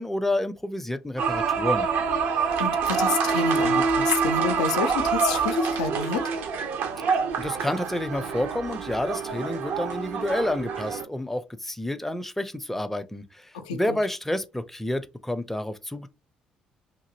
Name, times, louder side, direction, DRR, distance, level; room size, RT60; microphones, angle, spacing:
voice 1, 0.0-1.9 7.4-16.1, left 1 dB, 5° left, 0.5 m, -29 dB
sound 1, 1.2-11.0, right 5 dB, 60° right, 0.6 m, -26 dB
voice 2, 2.3-6.3 13.5-14.0, left 6 dB, 75° left, 0.4 m, -29 dB
2.9 x 2.6 x 2.6 m
figure-of-eight pair, 45°, 4 cm